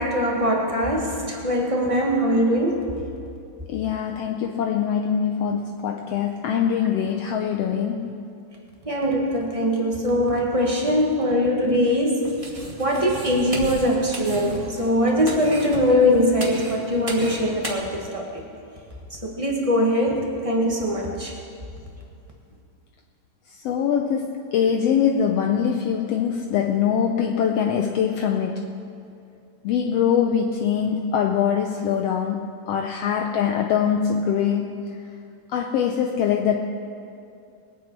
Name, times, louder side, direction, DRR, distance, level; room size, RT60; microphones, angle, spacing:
voice 1, 0.0-2.9 7.8-7.9 8.8-12.3 12.8-18.4 19.1-21.3, equal, 35° right, -1 dB, 0.5 m, -22 dB
voice 2, 3.7-8.2 23.5-28.7 29.6-35.0 35.5-36.6, left 8 dB, 75° left, 3 dB, 1.5 m, -23 dB
sound 1, 12.2-17.7, right 2 dB, 10° right, 2.0 m, -35 dB
22.0 x 9.5 x 4.5 m, 2.5 s
omnidirectional pair, 3.3 m